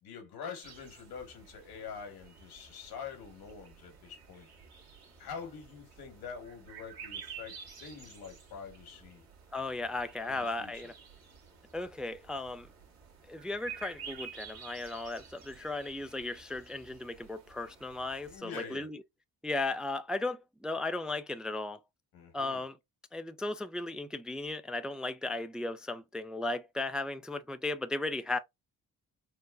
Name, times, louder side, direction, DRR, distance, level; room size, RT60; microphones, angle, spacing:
voice 1, 0.0-4.5 5.2-9.2 10.2-10.9 18.3-18.9 22.1-22.6, left 6 dB, 90° left, 1.8 m, -45 dB
sound 1, 0.6-18.4, right 6 dB, 75° right, 2.0 m, -51 dB
voice 2, 9.5-10.9 11.7-12.7 13.3-19.0 19.4-21.8 22.3-22.8 23.1-28.4, left 2 dB, ahead, 0.3 m, -36 dB
4.5 x 2.1 x 2.5 m
cardioid pair, 80°, 36 cm